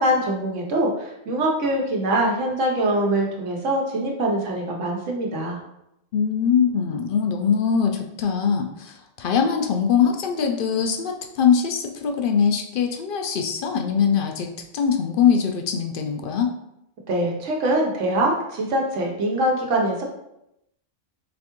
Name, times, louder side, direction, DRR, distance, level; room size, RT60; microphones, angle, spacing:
voice 1, 0.0-5.6 17.1-20.0, right 1 dB, 85° right, 0 dB, 1.1 m, -23 dB
voice 2, 6.1-16.5, left 7 dB, 60° left, 4 dB, 0.6 m, -22 dB
4.2 x 3.3 x 3.0 m, 0.83 s
omnidirectional pair, 1.2 m